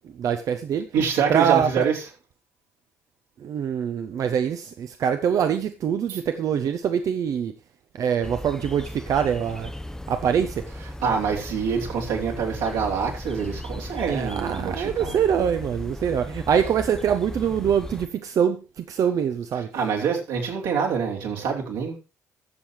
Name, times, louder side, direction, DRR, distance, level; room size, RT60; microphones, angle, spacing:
voice 1, 0.2-0.9 1.3-1.9 3.4-7.5 7.9-9.7 10.1-10.7 14.1-19.7, right 8 dB, 50° right, 0.8 m, -24 dB
voice 2, 0.9-2.0 6.1-6.2 11.0-15.2 19.7-22.0, right 6 dB, 70° right, 3.3 m, -26 dB
sound 1, 8.2-18.1, left 1 dB, 5° left, 0.7 m, -37 dB
21.5 x 7.2 x 3.2 m
figure-of-eight pair, 45°, 8 cm